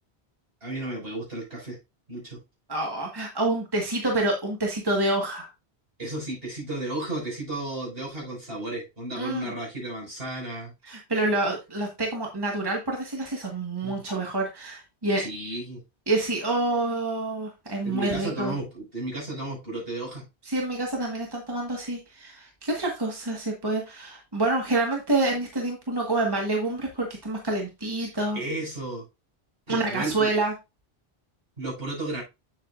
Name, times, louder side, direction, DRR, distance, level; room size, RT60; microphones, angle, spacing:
voice 1, 0.6-1.8 2.1-2.4 6.0-10.7 13.8-14.0 15.2-15.8 17.8-20.2 28.3-29.0 29.7-30.3 31.6-32.2, right 2 dB, 65° right, -4 dB, 6.3 m, -33 dB
voice 2, 2.7-5.5 9.2-9.5 10.8-15.2 16.1-18.5 20.4-28.4 29.7-30.5, right 2 dB, 20° right, 0 dB, 1.7 m, -27 dB
8.5 x 7.6 x 2.5 m, 0.24 s
omnidirectional pair, 1.1 m